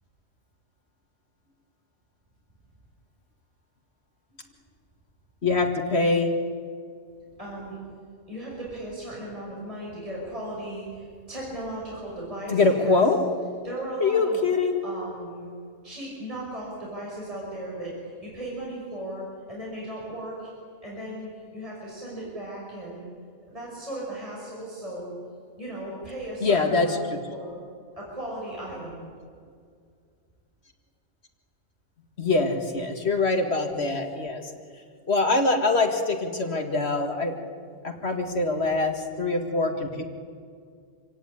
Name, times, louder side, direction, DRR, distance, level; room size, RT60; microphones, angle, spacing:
voice 1, 5.4-6.3 12.5-13.2 14.0-14.8 26.4-27.2 32.2-34.5 35.1-37.4 37.8-40.0, left 3 dB, 50° left, 4 dB, 2.2 m, -24 dB
voice 2, 7.4-7.8 8.3-13.0 13.6-14.4 14.8-15.5 15.8-20.5 20.8-23.1 23.5-25.1 25.6-27.6 27.9-29.1, right 1 dB, 25° right, -5 dB, 5.8 m, -36 dB
27.5 x 16.5 x 10.0 m, 2.2 s
omnidirectional pair, 1.4 m